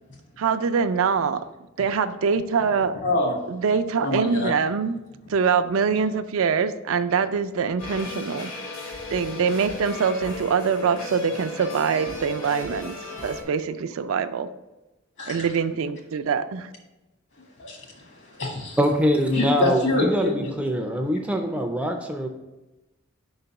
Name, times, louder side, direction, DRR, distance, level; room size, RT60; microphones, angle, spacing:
voice 1, 0.4-1.4 1.8-3.0 3.5-5.0 5.3-8.5 9.1-12.9 13.2-14.5 15.3-16.7, right 6 dB, 75° right, 10 dB, 0.4 m, -24 dB
voice 2, 3.0-3.5 4.0-4.5 15.2-15.5 17.6-18.8 19.3-20.8, left 1 dB, 60° left, 0 dB, 1.7 m, -26 dB
sound 1, 7.8-13.4, left 2 dB, 85° left, 1.8 m, -36 dB
voice 3, 18.8-22.3, equal, 5° right, 4 dB, 0.4 m, -23 dB
5.2 x 3.9 x 5.6 m, 1.0 s
head